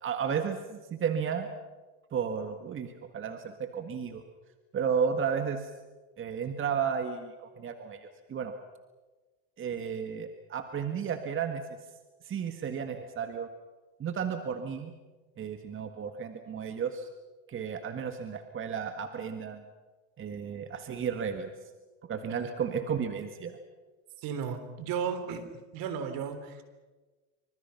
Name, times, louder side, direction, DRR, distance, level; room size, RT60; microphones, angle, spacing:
voice 1, 0.0-1.5 2.1-4.2 4.7-5.7 6.2-8.5 9.6-11.6 12.2-13.5 14.0-14.9 15.4-17.1 17.5-19.6 20.2-21.5 22.0-23.6, right 7 dB, 30° right, 7 dB, 1.8 m, -33 dB
voice 2, 24.2-25.5 25.7-26.6, right 7 dB, 60° right, 10 dB, 3.7 m, -34 dB
26.5 x 25.0 x 5.9 m, 1.3 s
supercardioid pair, 105°, 39 cm